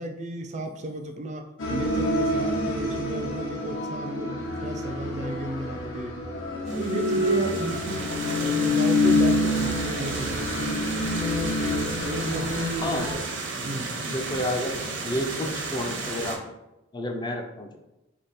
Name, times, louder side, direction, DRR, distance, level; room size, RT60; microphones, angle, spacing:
voice 1, 0.0-6.2 6.7-10.7 12.0-13.1 13.6-13.9, right 1 dB, 35° right, 5 dB, 0.5 m, -34 dB
sound 1, 1.6-13.1, left 1 dB, 75° left, 1.2 m, -27 dB
sound 2, 6.7-16.4, right 3 dB, 65° right, 0.8 m, -33 dB
voice 2, 12.8-13.2 13.7-16.4 16.9-17.8, left 1 dB, 20° left, 3 dB, 0.5 m, -31 dB
3.5 x 3.3 x 4.2 m, 0.96 s
head